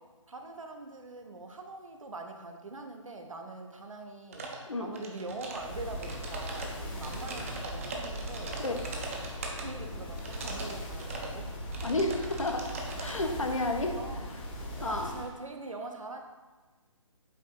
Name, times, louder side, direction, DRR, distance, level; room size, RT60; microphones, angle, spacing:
voice 1, 0.3-4.5 4.8-8.6 9.6-11.5 13.0-14.3 14.6-16.2, right 3 dB, 75° right, 4 dB, 0.7 m, -43 dB
sound 1, 4.3-4.6 4.9-5.7 6.0-9.6 10.2-10.7 11.0-11.3 11.7-13.2, right 3 dB, 25° right, 0.5 m, -40 dB
sound 2, 5.6-15.3, equal, 20° left, 0.6 m, -39 dB
voice 2, 11.8-14.0 14.8-15.2, left 2 dB, 75° left, 4 dB, 0.7 m, -31 dB
8.0 x 2.7 x 2.3 m, 1.3 s
figure-of-eight pair, 140°, 17 cm